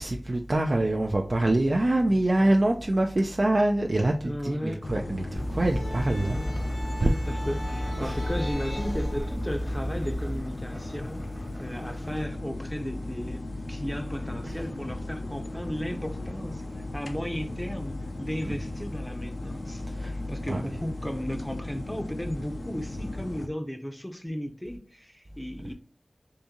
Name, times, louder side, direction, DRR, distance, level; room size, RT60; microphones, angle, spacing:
voice 1, 0.0-6.4 7.0-7.1 8.0-8.2 14.5-14.6 19.9-20.2 20.5-20.6, right 1 dB, 55° right, 0.3 m, -25 dB
voice 2, 2.1-2.5 4.2-4.8 6.2-6.5 7.0-11.3 11.6-13.4 13.7-16.7 16.9-25.7, equal, 10° left, 0.5 m, -35 dB
sound 1, 4.8-23.5, left 2 dB, 65° left, 0.4 m, -36 dB
sound 2, 5.3-10.4, equal, 85° left, 1.4 m, -32 dB
sound 3, 6.1-12.3, equal, 20° right, 0.9 m, -46 dB
3.6 x 2.6 x 2.8 m
wide cardioid pair, 50°, 0 cm